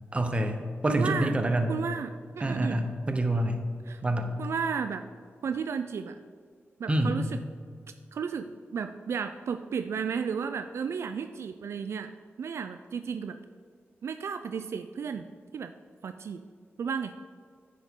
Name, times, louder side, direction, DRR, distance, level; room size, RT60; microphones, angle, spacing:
voice 1, 0.1-0.6 0.8-1.7 2.4-3.6 4.0-4.3 6.9-7.2, right 1 dB, 25° right, 6 dB, 0.9 m, -26 dB
voice 2, 0.9-1.4 1.7-2.8 3.9-4.0 4.4-5.0 5.4-6.2 6.8-7.4 8.1-12.1 12.4-13.4 14.0-15.3 15.5-15.7 16.0-16.4 16.8-17.1, right 6 dB, 70° right, 9 dB, 0.3 m, -33 dB
9.8 x 7.4 x 3.7 m, 2.1 s
wide cardioid pair, 105°, 5 cm